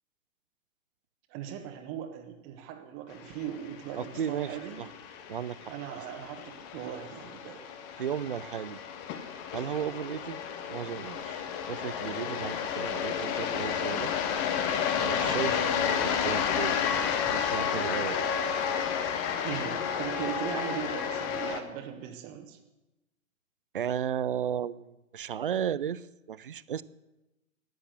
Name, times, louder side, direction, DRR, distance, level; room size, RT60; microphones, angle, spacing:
voice 1, 1.3-4.9 5.7-7.6 15.2-15.6 19.4-22.6, right 9 dB, 20° right, 4 dB, 1.3 m, -39 dB
sound 1, 3.3-21.6, left 7 dB, 15° left, 0.7 m, -31 dB
voice 2, 4.0-4.9 5.3-6.0 8.0-8.8 9.5-10.4 10.7-11.4 11.7-14.1 15.0-16.8 17.3-18.3 23.7-26.8, right 9 dB, 40° right, 18 dB, 0.5 m, -34 dB
13.5 x 10.0 x 7.9 m, 1.0 s
figure-of-eight pair, 125°, 41 cm